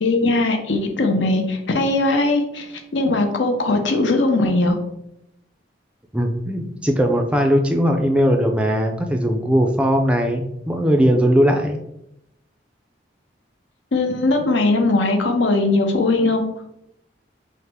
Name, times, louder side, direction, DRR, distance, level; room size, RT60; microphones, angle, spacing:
voice 1, 0.0-4.8 13.9-16.4, left 2 dB, 85° left, 4 dB, 0.7 m, -19 dB
voice 2, 6.1-11.8, equal, 5° right, 3 dB, 0.3 m, -19 dB
5.5 x 2.0 x 3.5 m, 0.79 s
head